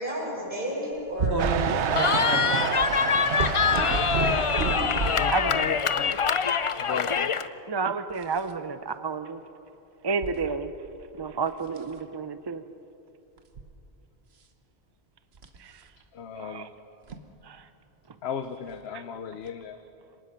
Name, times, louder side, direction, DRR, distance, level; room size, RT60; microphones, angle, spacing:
voice 1, 0.0-3.6, equal, 50° right, -4 dB, 5.8 m, -34 dB
sound 1, 1.2-5.3 6.0-6.3 8.1-8.5 10.2-10.4 10.9-11.2 11.7-11.9 13.4-13.7 15.4-15.6 17.1-17.2 18.7-18.8 19.5-19.6, right 4 dB, 70° right, 1.4 m, -30 dB
sound 2, 1.4-5.7, right 7 dB, 90° right, 1.1 m, -30 dB
Cheering, 2.0-7.5, left 6 dB, 45° left, 0.4 m, -25 dB
voice 2, 4.8-6.2 6.8-7.3 16.1-16.7 18.2-19.8, left 7 dB, 70° left, 9 dB, 1.0 m, -35 dB
voice 3, 5.3-5.9 7.1-7.2 7.7-9.4 10.0-10.7 11.1-12.6 15.6-15.8 16.3-16.7 17.4-17.7 18.9-19.0, right 4 dB, 30° right, 11 dB, 0.5 m, -31 dB
25.0 x 19.0 x 5.7 m, 2.8 s
omnidirectional pair, 1.1 m